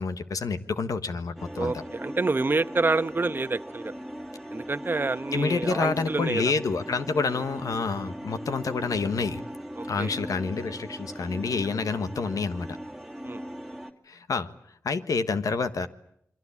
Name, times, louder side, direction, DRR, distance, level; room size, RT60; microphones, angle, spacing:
voice 1, 0.0-1.8 5.3-9.4 9.9-12.7 14.1-14.5 14.8-15.9, left 4 dB, 80° left, 11 dB, 1.5 m, -28 dB
sound 1, 1.4-13.9, equal, ahead, 2.6 m, -39 dB
voice 2, 1.6-3.9 4.5-6.4 7.3-7.4 9.8-10.1 13.2-13.4, right 3 dB, 35° right, 12 dB, 1.0 m, -28 dB
28.0 x 23.5 x 8.6 m, 0.73 s
wide cardioid pair, 70°, 6 cm